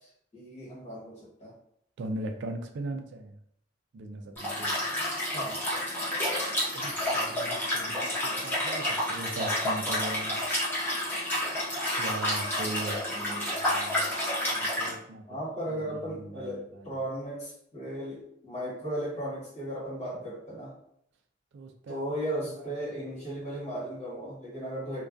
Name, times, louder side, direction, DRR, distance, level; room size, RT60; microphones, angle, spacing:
voice 1, 0.3-1.5 5.3-5.6 13.1-13.6 15.3-20.7 21.9-25.1, right 1 dB, 35° left, -7 dB, 1.3 m, -36 dB
voice 2, 2.0-3.4 3.9-4.8 6.7-8.0 8.2-10.4 12.0-14.1 14.5-15.2 15.9-17.0 21.5-22.1 22.5-22.7, right 2 dB, 65° right, 5 dB, 0.3 m, -39 dB
Liquid, 4.4-14.9, left 1 dB, 10° left, 0.8 m, -30 dB
2.2 x 2.2 x 2.4 m, 0.71 s
head